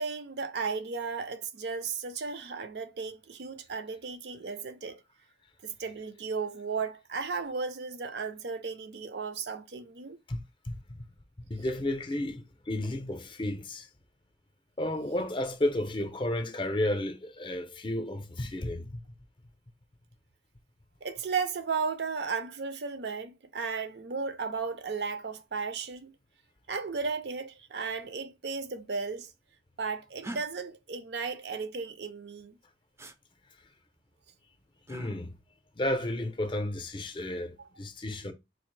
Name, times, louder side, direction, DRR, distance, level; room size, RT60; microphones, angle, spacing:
voice 1, 0.0-5.0 5.6-10.2 21.0-26.1 26.7-29.3 29.8-32.6 37.6-37.7, right 5 dB, 70° right, 0.5 m, -35 dB
voice 2, 11.5-13.9 14.8-19.0 34.9-35.3 35.8-38.3, left 1 dB, 30° left, 0.6 m, -32 dB
sound 1, 30.2-30.4 33.0-33.2 34.9-35.1 36.9-37.3, right 1 dB, 15° right, 0.4 m, -42 dB
4.0 x 2.4 x 3.2 m
head